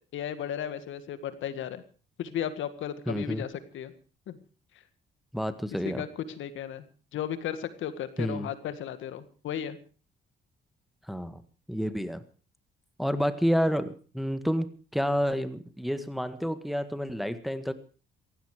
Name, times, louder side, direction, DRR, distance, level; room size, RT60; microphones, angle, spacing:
voice 1, 0.1-1.8 2.2-3.9 4.3-4.4 5.8-6.8 7.1-9.8, left 9 dB, 80° left, 12 dB, 1.9 m, -35 dB
voice 2, 3.1-3.4 5.3-6.0 8.2-8.5 11.1-11.4 11.7-12.2 13.0-17.7, equal, ahead, 11 dB, 1.7 m, -29 dB
17.0 x 16.0 x 4.9 m, 0.37 s
cardioid pair, 90°, 20 cm